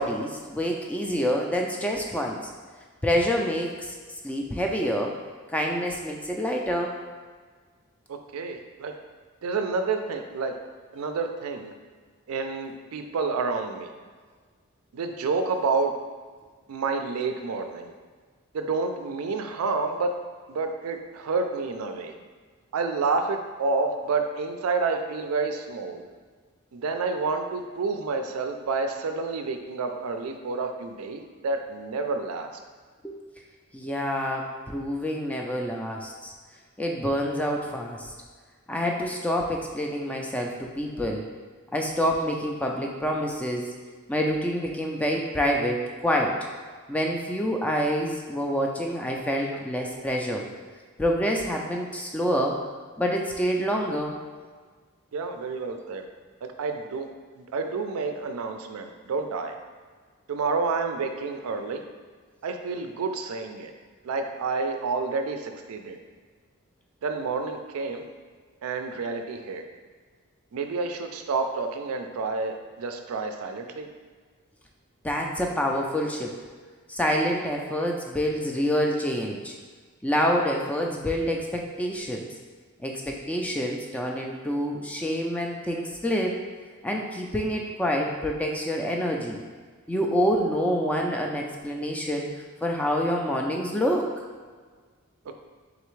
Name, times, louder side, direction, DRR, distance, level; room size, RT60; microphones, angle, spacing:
voice 1, 0.0-2.4 3.0-3.9 4.2-5.2 5.5-6.9 33.0-33.2 33.7-36.3 36.8-38.1 38.7-41.2 41.7-43.7 44.1-46.5 46.9-50.5 51.0-52.6 53.0-54.2 75.0-76.4 76.9-79.6 80.0-82.3 82.8-86.4 86.8-89.4 89.9-92.3 92.6-94.1, equal, 5° left, 0 dB, 0.3 m, -27 dB
voice 2, 8.1-8.9 9.4-10.6 10.9-11.7 12.3-13.9 14.9-15.9 16.7-17.9 18.5-20.2 20.5-22.1 22.7-26.0 26.7-32.5 49.5-50.0 55.1-56.0 56.4-57.1 57.4-59.5 60.3-61.8 62.4-63.7 64.0-66.0 67.0-68.0 68.6-69.6 70.5-73.9, right 4 dB, 80° right, 6 dB, 0.4 m, -29 dB
3.9 x 3.3 x 3.1 m, 1.5 s
head